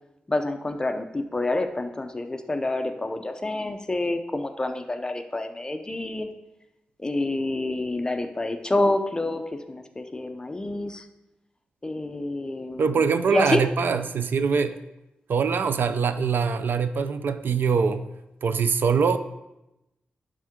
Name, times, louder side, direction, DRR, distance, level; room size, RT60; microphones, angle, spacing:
voice 1, 0.3-6.3 7.0-9.4 9.7-11.1 11.8-13.0 13.3-13.6, left 2 dB, 20° left, 0.6 m, -28 dB
voice 2, 12.8-14.8 15.3-18.1 18.4-19.2, right 5 dB, 65° right, 0.5 m, -23 dB
11.0 x 3.7 x 5.0 m
wide cardioid pair, 105°, 4 cm